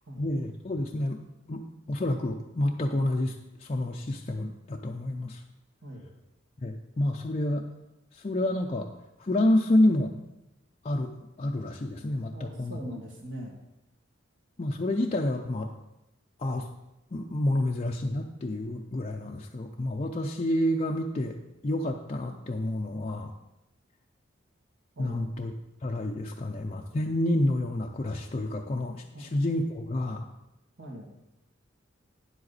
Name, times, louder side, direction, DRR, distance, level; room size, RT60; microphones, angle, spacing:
voice 1, 0.2-1.2 1.5-5.4 6.6-7.7 8.1-8.9 9.2-10.1 10.8-12.8 14.6-15.7 16.4-16.7 17.1-21.4 21.6-23.3 25.0-25.5 25.8-30.2, left 1 dB, 35° left, 1 dB, 0.5 m, -29 dB
voice 2, 12.3-13.5 25.0-25.2 29.1-29.2 30.8-31.1, equal, 65° right, -1 dB, 2.2 m, -41 dB
9.7 x 7.8 x 4.1 m, 0.94 s
head